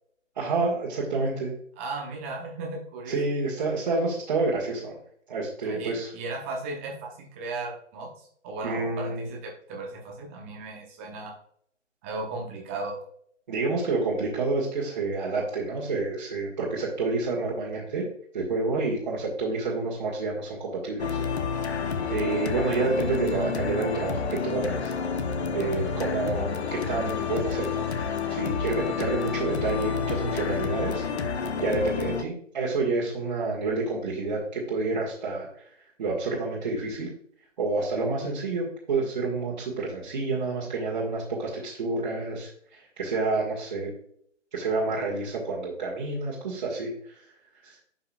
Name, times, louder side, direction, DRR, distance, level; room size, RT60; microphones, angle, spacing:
voice 1, 0.4-1.5 3.1-5.0 5.3-6.1 8.6-9.3 13.5-18.1 18.3-21.2 22.1-24.9 25.5-27.9 28.3-31.0 31.6-35.7 36.0-37.1 37.6-43.9 44.5-47.2 47.6-47.8, right 3 dB, 35° right, -5 dB, 1.8 m, -29 dB
voice 2, 1.8-3.2 5.6-8.1 8.4-11.3 12.0-13.0 23.3-23.5, right 3 dB, 10° right, -1 dB, 0.9 m, -36 dB
sound 1, 21.0-32.2, left 6 dB, 60° left, 0.9 m, -29 dB
10.5 x 5.6 x 2.4 m, 0.64 s
figure-of-eight pair, 150°, 37 cm